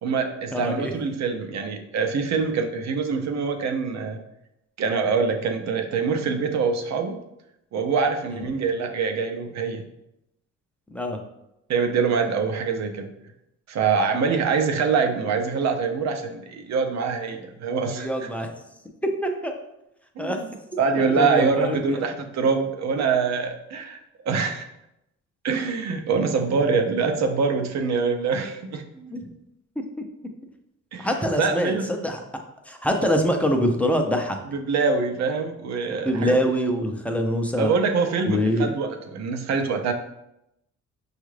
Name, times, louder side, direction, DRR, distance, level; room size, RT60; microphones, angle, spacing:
voice 1, 0.0-4.2 4.8-7.2 7.7-9.8 11.7-13.1 13.7-18.3 20.2-20.5 20.8-24.0 24.2-24.6 25.4-28.8 30.9-31.1 31.3-31.9 34.5-36.4 37.6-39.9, right 5 dB, 60° right, 5 dB, 0.6 m, -24 dB
voice 2, 0.5-0.9 10.9-11.2 18.0-18.5 19.2-19.5 20.2-20.4 20.9-22.0 29.0-29.2 31.0-32.2 32.7-34.4 36.0-37.7 38.2-38.7, equal, 5° left, 3 dB, 0.5 m, -24 dB
5.3 x 2.4 x 3.2 m, 0.85 s
cardioid pair, 90°, 30 cm